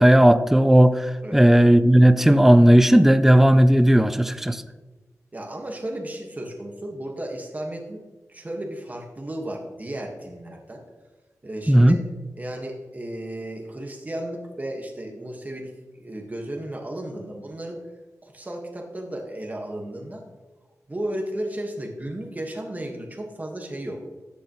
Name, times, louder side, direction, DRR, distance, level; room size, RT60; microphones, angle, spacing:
voice 1, 0.0-4.6 11.7-12.0, right 1 dB, 5° right, 0.5 m, -15 dB
voice 2, 5.3-8.0 8.3-10.8 11.4-12.0 12.4-15.7 16.0-17.8 18.2-20.2 20.9-24.0, right 1 dB, 25° right, 1.6 m, -34 dB
14.0 x 8.2 x 3.1 m
wide cardioid pair, 85°, 6 cm